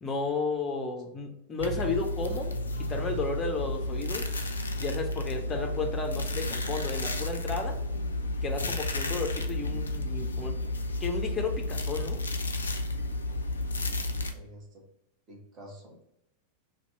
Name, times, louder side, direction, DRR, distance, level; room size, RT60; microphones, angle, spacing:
voice 1, 0.0-4.3 4.6-7.8 8.4-10.6 11.0-12.2, left 3 dB, 20° left, 3 dB, 0.6 m, -33 dB
sound 1, 1.6-14.3, left 1 dB, 75° left, 0.3 m, -32 dB
voice 2, 14.2-14.8 15.3-16.0, equal, 30° right, 0 dB, 1.0 m, -49 dB
2.9 x 2.3 x 4.0 m, 0.82 s
figure-of-eight pair, 90°, 0 cm